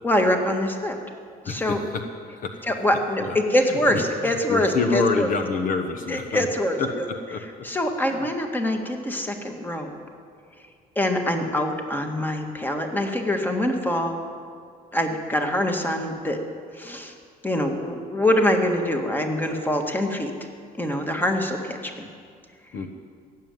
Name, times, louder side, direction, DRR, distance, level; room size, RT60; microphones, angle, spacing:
voice 1, 0.0-0.9 1.4-1.8 2.7-5.3 6.1-7.0 7.6-10.0 10.9-14.2 14.9-16.4 16.7-17.1 17.4-20.3 20.8-22.1, left 1 dB, 10° left, 4 dB, 1.7 m, -24 dB
voice 2, 1.4-2.1 2.4-2.7 3.2-6.5 6.8-7.7 8.1-8.3 22.7-22.9, left 4 dB, 55° left, 6 dB, 1.1 m, -28 dB
16.5 x 7.6 x 9.2 m, 2.1 s
cardioid pair, 110°, 17 cm